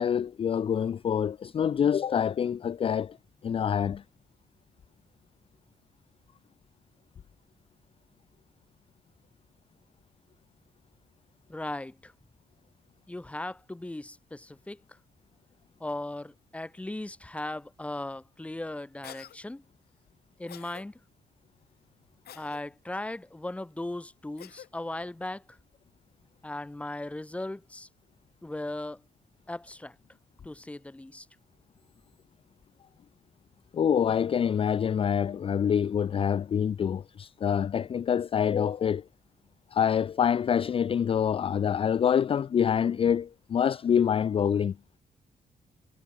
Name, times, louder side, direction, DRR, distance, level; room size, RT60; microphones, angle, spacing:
voice 1, 0.0-3.2 3.4-4.0 33.7-39.0 39.7-44.7, left 8 dB, 35° left, 0.4 m, -26 dB
voice 2, 11.5-12.1 13.1-14.8 15.8-19.6 20.4-21.0 22.3-25.4 26.4-27.9 28.4-29.0 29.5-30.0 30.4-31.3, left 1 dB, 10° left, 1.3 m, -37 dB
Cough, 19.0-19.4 20.5-20.8 22.3-22.6 24.4-24.7, left 11 dB, 80° left, 3.1 m, -47 dB
wide cardioid pair, 175°, 16 cm